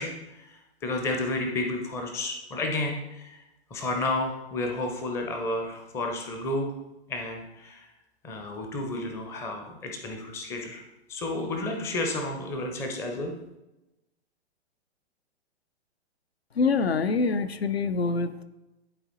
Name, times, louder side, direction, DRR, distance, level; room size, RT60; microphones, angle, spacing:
voice 1, 0.0-3.4 3.7-6.7 7.1-7.9 8.2-10.8 11.1-13.3, left 2 dB, 10° left, 3 dB, 0.5 m, -31 dB
voice 2, 16.6-18.4, left 4 dB, 70° left, 11 dB, 0.6 m, -25 dB
11.0 x 4.0 x 3.0 m, 0.98 s
figure-of-eight pair, 110°, 32 cm